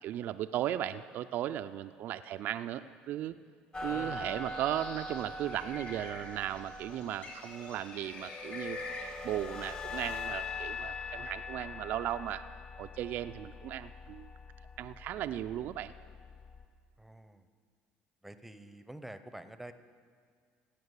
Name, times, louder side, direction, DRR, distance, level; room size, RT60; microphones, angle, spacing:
voice 1, 0.0-3.4 3.8-8.8 9.2-12.4 12.8-14.3 14.8-15.9, right 12 dB, 60° right, 11 dB, 0.3 m, -36 dB
sound 1, 3.7-16.6, left 3 dB, 25° left, 1.1 m, -42 dB
voice 2, 3.8-4.4 17.0-17.5 18.2-19.7, right 1 dB, 5° right, 11 dB, 0.7 m, -48 dB
Bird, 4.0-9.5, left 3 dB, 50° left, 3.9 m, -47 dB
16.5 x 5.9 x 8.2 m, 2.1 s
cardioid pair, 110°, 4 cm